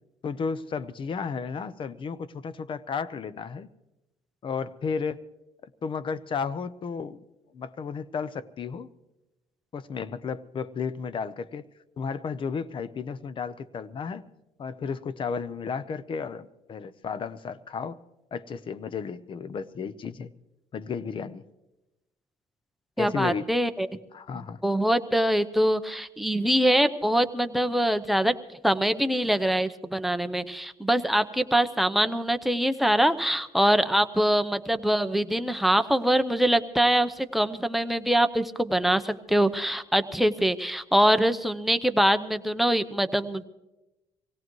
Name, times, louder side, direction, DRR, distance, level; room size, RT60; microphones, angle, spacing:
voice 1, 0.2-3.7 4.4-5.2 5.8-7.2 7.5-8.9 9.7-11.6 12.0-14.3 14.6-18.0 18.3-20.3 20.7-21.4 23.0-23.5 24.1-24.6, left 5 dB, 40° left, 16 dB, 0.7 m, -33 dB
voice 2, 23.0-23.9 24.3-28.4 28.6-43.4, equal, ahead, 8 dB, 0.7 m, -24 dB
24.5 x 17.5 x 3.1 m, 0.98 s
cardioid pair, 105°, 13 cm